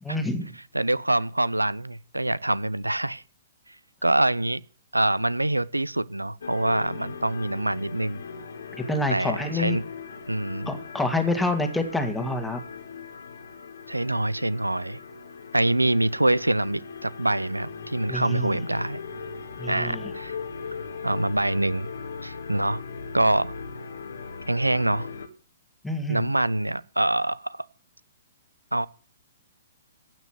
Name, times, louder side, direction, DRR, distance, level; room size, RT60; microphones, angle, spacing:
voice 1, 0.0-0.5 8.8-9.8 10.7-12.6 18.1-18.5 19.6-20.0 25.8-26.3, left 2 dB, 5° left, 2.1 m, -27 dB
voice 2, 0.7-3.2 4.0-4.6 4.9-8.2 9.1-9.8 10.3-10.7 13.9-15.0 15.5-19.0 19.7-20.4 21.0-21.9 22.2-22.8 23.1-23.5 24.5-25.1 26.1-27.6 28.7-28.9, right 1 dB, 90° right, 0.6 m, -25 dB
sound 1, 6.4-25.3, left 5 dB, 65° left, 1.7 m, -39 dB
16.0 x 6.1 x 9.4 m
figure-of-eight pair, 120°, 0 cm